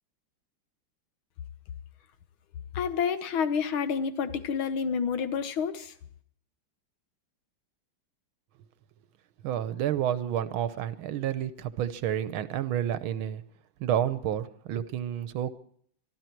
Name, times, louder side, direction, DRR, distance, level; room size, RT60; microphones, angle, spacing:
voice 1, 2.7-5.9, left 6 dB, 80° left, 11 dB, 1.8 m, -29 dB
voice 2, 9.4-13.4 13.8-15.5, right 10 dB, 85° right, 13 dB, 1.7 m, -30 dB
24.5 x 12.5 x 4.6 m, 0.63 s
omnidirectional pair, 2.2 m